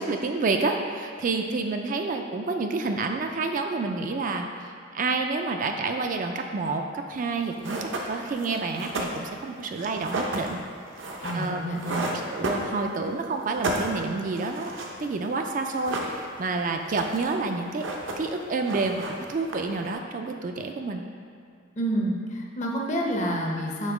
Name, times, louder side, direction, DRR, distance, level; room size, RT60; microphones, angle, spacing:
voice 1, 0.0-4.5 4.9-10.6 11.3-11.6 11.9-14.7 15.0-17.8 18.2-21.0, right 3 dB, 45° right, 4 dB, 0.3 m, -29 dB
sound 1, 7.2-7.3 7.6-13.1 13.4-15.0 15.2-15.3 15.6-16.5 16.8-17.4 17.6-18.4 18.6-19.9, right 1 dB, 75° right, 0.7 m, -33 dB
voice 2, 11.2-12.0 21.8-23.9, right 1 dB, 40° left, -1 dB, 0.7 m, -28 dB
5.3 x 3.8 x 4.9 m, 2.2 s
head